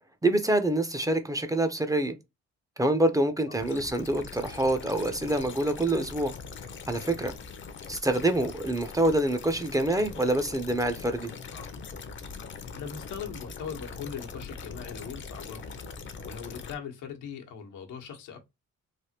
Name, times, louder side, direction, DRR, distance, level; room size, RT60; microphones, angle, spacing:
voice 1, 0.2-2.2 2.8-6.3 6.9-7.3 7.9-11.3, right 1 dB, 10° right, 0.5 m, -26 dB
sound 1, 3.6-16.8, left 5 dB, 40° left, 0.6 m, -42 dB
voice 2, 12.7-15.6 16.2-18.4, left 7 dB, 85° left, 0.9 m, -40 dB
3.3 x 2.1 x 2.8 m
cardioid pair, 90°, 30 cm